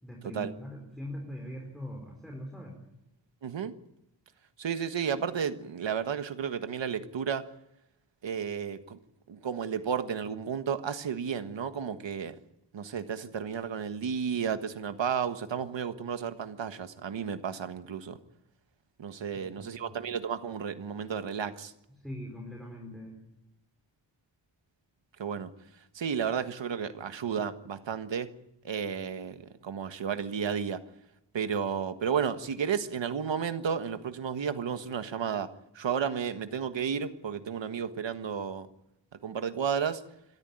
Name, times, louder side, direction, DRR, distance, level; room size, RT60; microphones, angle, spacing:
voice 1, 0.0-2.7 19.3-19.9 22.0-23.2, equal, ahead, 4.7 m, -42 dB
voice 2, 3.4-3.7 4.6-7.5 8.2-9.0 9.3-12.4 12.7-18.2 19.0-21.7 25.2-25.5 25.9-28.3 28.6-30.8 31.3-35.5 35.7-38.7 39.2-40.0, right 7 dB, 80° right, 1.5 m, -32 dB
26.5 x 13.5 x 9.1 m
wide cardioid pair, 110°, 44 cm